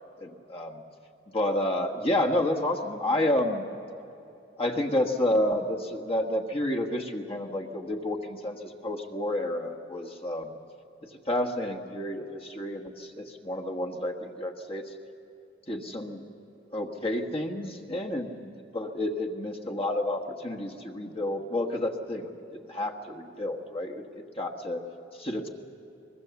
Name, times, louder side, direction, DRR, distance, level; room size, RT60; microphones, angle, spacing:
voice 1, 0.2-0.8 1.3-3.7 4.6-10.6 11.3-14.8 15.7-16.2 16.7-24.0 24.4-24.8 25.2-25.5, left 1 dB, 30° left, 2 dB, 1.3 m, -30 dB
23.0 x 21.0 x 7.0 m, 2.7 s
head